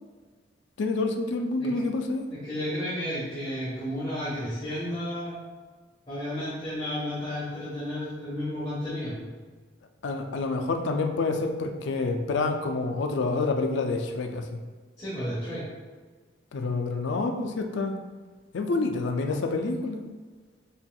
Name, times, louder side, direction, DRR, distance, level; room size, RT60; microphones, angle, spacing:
voice 1, 0.8-2.3 10.0-14.5 16.5-17.9 18.5-20.0, left 3 dB, 75° left, 5 dB, 0.4 m, -28 dB
voice 2, 2.3-5.4 6.1-9.3 15.0-15.6, left 1 dB, 25° left, -11 dB, 1.0 m, -32 dB
4.2 x 3.4 x 2.3 m, 1.4 s
head